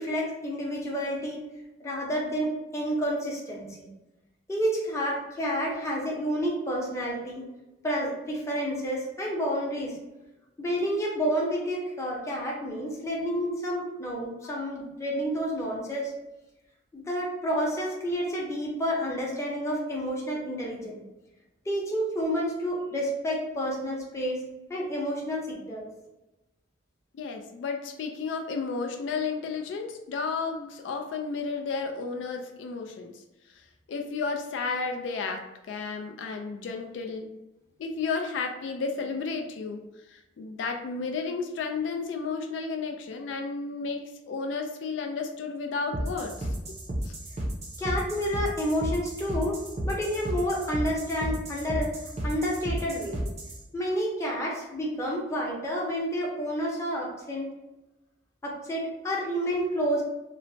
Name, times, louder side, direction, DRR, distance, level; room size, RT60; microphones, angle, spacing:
voice 1, 0.0-1.4 1.8-3.9 4.5-7.5 7.8-9.9 10.6-16.1 16.9-21.0 21.7-24.4 24.7-25.9 47.8-51.9 52.2-53.2 53.7-57.5 58.4-60.0, equal, 15° left, -3 dB, 0.6 m, -30 dB
voice 2, 27.2-33.2 33.6-33.7 33.9-37.4 37.8-46.5 47.0-47.1, left 4 dB, 80° left, 4 dB, 0.3 m, -33 dB
sound 1, 45.9-53.6, right 1 dB, 35° right, 0.5 m, -33 dB
3.0 x 2.0 x 2.6 m, 0.99 s
head